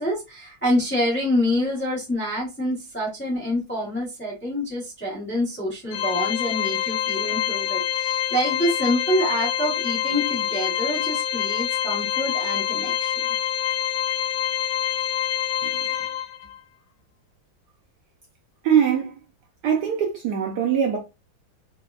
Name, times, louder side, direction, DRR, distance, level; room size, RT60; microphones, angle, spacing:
voice 1, 0.0-13.3, left 1 dB, 10° left, 0.5 m, -26 dB
Organ, 5.9-16.6, left 10 dB, 90° left, 1.4 m, -26 dB
voice 2, 18.6-19.2 19.6-21.0, right 8 dB, 70° right, 1.0 m, -22 dB
3.4 x 2.2 x 2.2 m
omnidirectional pair, 2.2 m